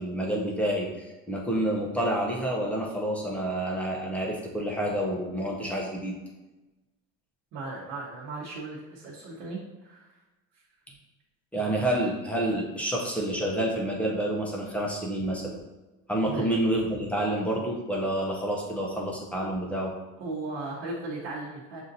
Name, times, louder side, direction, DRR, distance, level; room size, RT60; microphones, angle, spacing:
voice 1, 0.0-6.1 11.5-15.6 16.1-19.9, right 1 dB, 5° left, -2 dB, 0.7 m, -28 dB
voice 2, 7.5-10.1 16.2-16.5 20.2-21.8, right 3 dB, 55° right, -7 dB, 1.1 m, -36 dB
7.4 x 2.7 x 2.6 m, 1.1 s
cardioid pair, 155°, 32 cm